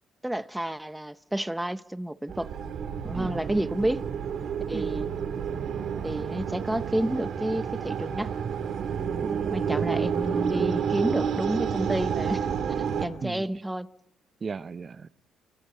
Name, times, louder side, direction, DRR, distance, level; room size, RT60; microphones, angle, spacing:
voice 1, 0.2-2.5 3.0-4.1 4.7-5.1 6.0-8.3 9.5-12.5 13.0-13.9, right 1 dB, 5° right, 0.8 m, -30 dB
sound 1, 2.3-13.1, right 7 dB, 65° right, 2.9 m, -30 dB
voice 2, 9.2-9.9 13.2-13.5 14.4-15.2, right 5 dB, 40° right, 0.8 m, -37 dB
30.0 x 24.5 x 3.9 m
cardioid pair, 90°, 0 cm